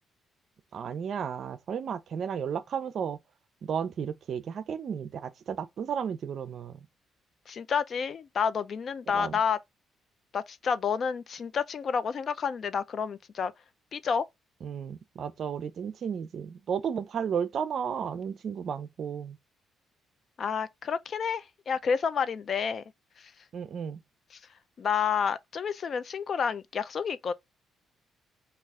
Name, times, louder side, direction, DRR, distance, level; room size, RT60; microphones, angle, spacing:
voice 1, 0.7-3.2 3.6-6.8 9.1-9.3 14.6-19.4 23.5-24.0, right 7 dB, 60° right, 0.4 m, -33 dB
voice 2, 7.5-9.6 10.3-13.5 13.9-14.3 20.4-22.8 24.8-27.3, left 6 dB, 50° left, 0.3 m, -29 dB
3.1 x 2.4 x 3.5 m
cardioid pair, 90°, 0 cm